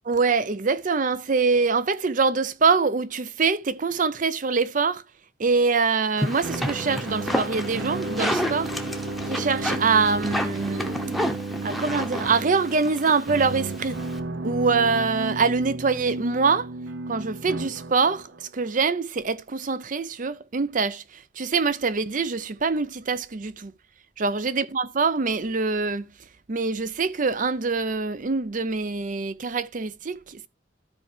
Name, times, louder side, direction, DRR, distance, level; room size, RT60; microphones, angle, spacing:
voice 1, 0.1-5.0 5.4-8.7 9.3-11.1 11.6-14.0 14.4-16.7 17.1-23.7 24.2-26.1 26.5-30.5, right 4 dB, 45° right, 0.6 m, -24 dB
sound 1, 6.2-14.2, equal, ahead, 0.9 m, -31 dB
sound 2, 6.4-18.5, right 2 dB, 80° right, 0.8 m, -33 dB
13.5 x 4.6 x 3.3 m
head